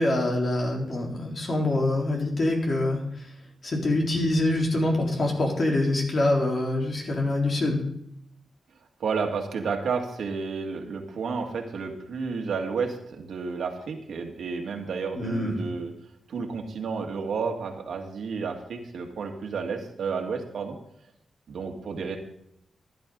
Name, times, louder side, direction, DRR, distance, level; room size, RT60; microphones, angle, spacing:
voice 1, 0.0-3.0 3.6-7.8 15.2-15.6, left 2 dB, 50° left, -1 dB, 3.9 m, -25 dB
voice 2, 9.0-15.9 16.3-20.8 21.5-22.2, right 5 dB, 80° right, 2 dB, 2.1 m, -31 dB
14.5 x 11.0 x 4.0 m, 0.74 s
cardioid pair, 85°, 0 cm